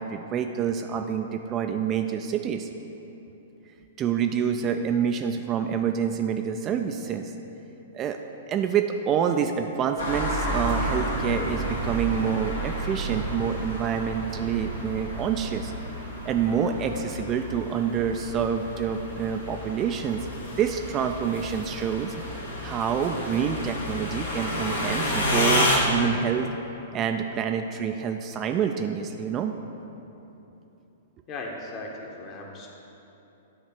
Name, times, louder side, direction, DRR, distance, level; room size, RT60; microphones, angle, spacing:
voice 1, 0.0-2.7 4.0-7.3 7.9-8.2 8.5-15.7 16.2-20.3 20.6-22.2 22.6-26.5 26.9-29.5, right 7 dB, 30° right, 5 dB, 0.3 m, -27 dB
sound 1, 10.0-25.8, equal, 75° left, 1.5 m, -30 dB
sound 2, 10.7-17.1, right 1 dB, 80° right, 1.4 m, -42 dB
voice 2, 31.3-32.7, left 2 dB, 30° left, 0 dB, 1.1 m, -37 dB
9.6 x 3.3 x 5.8 m, 3.0 s
figure-of-eight pair, 110°, 0 cm